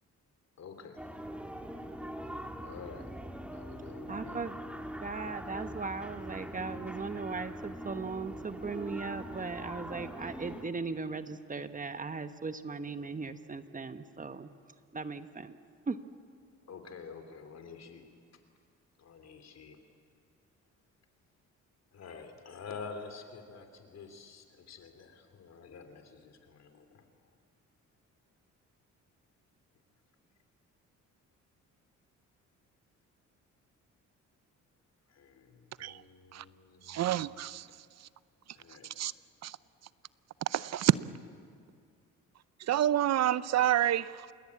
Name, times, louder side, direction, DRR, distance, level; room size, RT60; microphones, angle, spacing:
voice 1, 0.6-1.0 2.6-3.1 3.5-4.4 16.7-18.1 19.0-19.8 21.9-27.1 35.1-37.3 38.5-38.9, left 5 dB, 60° left, 7 dB, 3.5 m, -48 dB
sound 1, 1.0-10.6, equal, 5° right, 2.2 m, -42 dB
voice 2, 4.1-4.6 5.0-14.5 14.9-15.6 15.9-16.0, right 4 dB, 25° right, 10 dB, 1.2 m, -38 dB
voice 3, 36.9-37.7 39.0-39.1 39.4-39.6 40.5-40.9 42.6-44.3, right 12 dB, 60° right, 17 dB, 0.7 m, -28 dB
28.0 x 22.0 x 8.6 m, 2.2 s
cardioid pair, 90°, 30 cm